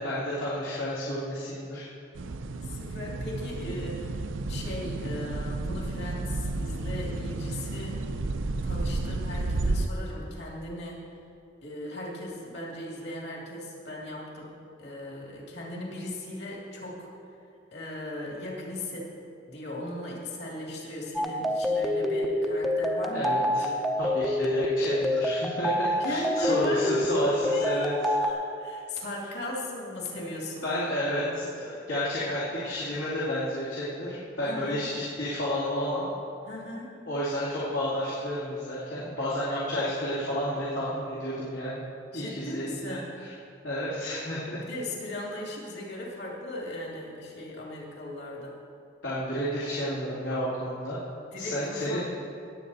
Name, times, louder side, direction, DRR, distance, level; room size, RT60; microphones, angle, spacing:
voice 1, 0.0-1.9 23.1-23.6 24.0-27.9 30.6-36.1 37.1-41.8 42.1-43.3 43.6-44.6 49.0-51.0 51.4-52.0, equal, 85° left, -9 dB, 2.4 m, -31 dB
sound 1, 2.2-9.9, right 2 dB, 85° right, 0.6 m, -32 dB
voice 2, 2.6-4.2 4.5-8.0 8.6-11.1 11.6-17.1 17.7-19.1 19.5-23.9 26.0-26.9 27.4-30.7 31.0-31.5 34.4-34.9 36.5-37.0 42.1-43.1 44.6-48.6 51.3-52.0, left 1 dB, 55° left, -3 dB, 2.5 m, -37 dB
sound 2, 21.2-28.3, left 1 dB, ahead, 0.5 m, -27 dB
18.5 x 7.7 x 4.1 m, 2.5 s
head